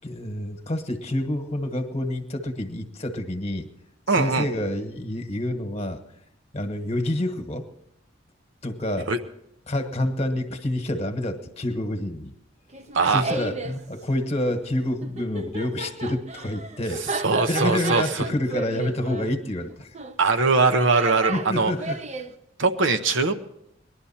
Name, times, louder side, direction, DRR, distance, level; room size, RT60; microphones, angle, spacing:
voice 1, 0.0-3.7 4.1-6.0 6.5-7.6 8.6-9.1 9.7-12.3 13.1-19.9 21.3-22.0, left 1 dB, 35° left, 7 dB, 1.3 m, -28 dB
voice 2, 4.1-4.5 9.1-9.2 12.9-13.2 17.2-18.3 20.2-21.7 22.6-23.3, right 4 dB, 70° right, 7 dB, 0.9 m, -21 dB
Laughter, 12.7-13.8 15.0-22.3, right 3 dB, 35° right, 0.7 m, -33 dB
19.5 x 11.5 x 4.3 m, 0.77 s
head